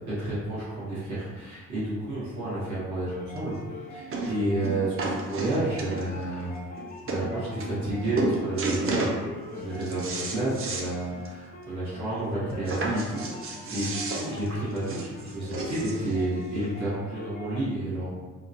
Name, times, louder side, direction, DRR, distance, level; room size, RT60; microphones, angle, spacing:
voice 1, 0.0-3.5 3.9-6.5 7.0-18.1, right 1 dB, 70° right, -10 dB, 1.5 m, -31 dB
sound 1, 3.1-17.6, left 2 dB, 30° left, 0.4 m, -43 dB
sound 2, 3.4-3.5 4.1-4.4 4.6-6.2 6.8-6.9 7.1-7.2 7.6-7.9 8.2-9.2 9.6-10.9 11.3-11.4 11.7-11.8 12.7-16.1 16.9-17.0, right 2 dB, 45° right, 0.6 m, -31 dB
3.7 x 2.2 x 2.7 m, 1.3 s
cardioid pair, 90°, 30 cm